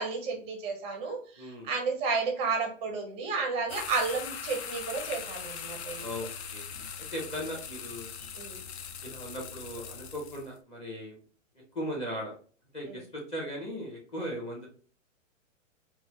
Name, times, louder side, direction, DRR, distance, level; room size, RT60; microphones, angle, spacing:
voice 1, 0.0-6.1 8.3-8.6 12.9-13.0, right 4 dB, 15° right, 3 dB, 0.5 m, -32 dB
voice 2, 1.4-1.7 6.0-6.6 7.1-8.1 9.0-11.2 11.7-12.3 12.7-14.7, equal, 15° left, -1 dB, 0.9 m, -37 dB
sound 1, 3.7-10.5, left 7 dB, 55° left, 0.6 m, -41 dB
4.1 x 2.2 x 2.8 m, 0.41 s
hypercardioid pair, 150°, 39 cm